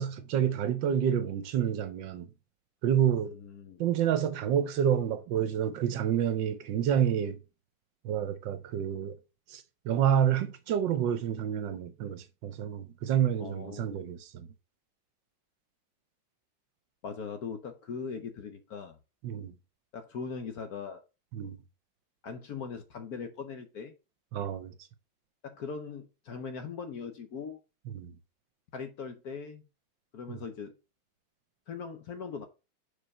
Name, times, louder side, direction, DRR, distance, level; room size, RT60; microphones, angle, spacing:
voice 1, 0.0-2.3 2.8-3.4 3.8-7.4 8.0-9.2 9.5-14.5 19.2-19.5 21.3-21.6 24.3-24.7 27.9-28.1 30.3-30.4, right 9 dB, 70° right, 1.3 m, -29 dB
voice 2, 3.2-3.8 13.4-14.0 17.0-19.0 19.9-21.0 22.2-23.9 25.4-27.6 28.7-29.6 30.1-30.7 31.7-32.5, left 5 dB, 60° left, 1.0 m, -40 dB
5.0 x 4.4 x 5.3 m
omnidirectional pair, 2.2 m